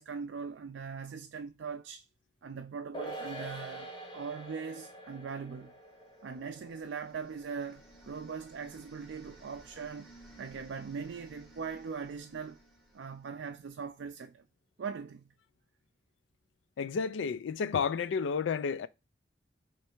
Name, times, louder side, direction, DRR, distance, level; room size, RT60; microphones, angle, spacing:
voice 1, 0.0-2.0 2.4-5.8 6.2-12.6 12.9-14.4 14.8-15.3, right 5 dB, 80° right, 0.4 m, -41 dB
sound 1, 2.9-9.6 9.9-10.0, right 1 dB, 25° left, 0.8 m, -47 dB
sound 2, 5.9-13.9, right 1 dB, ahead, 1.2 m, -58 dB
voice 2, 16.8-18.9, left 6 dB, 85° left, 0.4 m, -31 dB
3.3 x 3.2 x 4.4 m
head